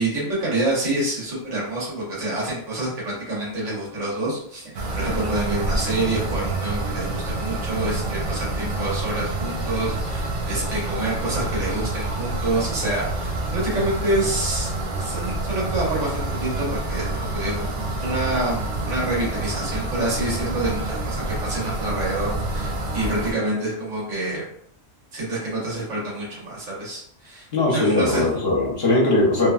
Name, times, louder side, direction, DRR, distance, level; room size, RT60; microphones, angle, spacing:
voice 1, 0.0-14.7 15.0-24.5 25.1-28.3, right 2 dB, 90° right, -5 dB, 1.4 m, -27 dB
sound 1, 4.7-23.3, right 2 dB, 60° right, 0.6 m, -28 dB
voice 2, 27.5-29.5, left 2 dB, 60° left, -3 dB, 0.9 m, -20 dB
2.9 x 2.1 x 2.4 m, 0.66 s
omnidirectional pair, 1.2 m